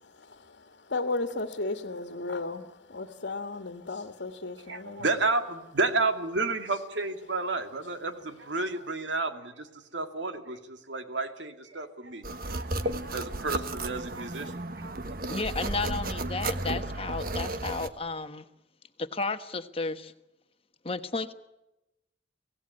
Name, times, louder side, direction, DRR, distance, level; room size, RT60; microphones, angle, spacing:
voice 1, 0.2-5.1, left 3 dB, 75° left, 6 dB, 1.7 m, -35 dB
voice 2, 4.7-12.7 13.0-15.0, right 3 dB, 80° right, 6 dB, 2.4 m, -31 dB
sound 1, 12.2-17.9, right 2 dB, 55° right, 1.3 m, -33 dB
voice 3, 15.3-18.4 19.0-20.1 20.8-21.3, left 3 dB, 30° left, 9 dB, 1.3 m, -33 dB
24.5 x 17.5 x 9.8 m, 0.92 s
head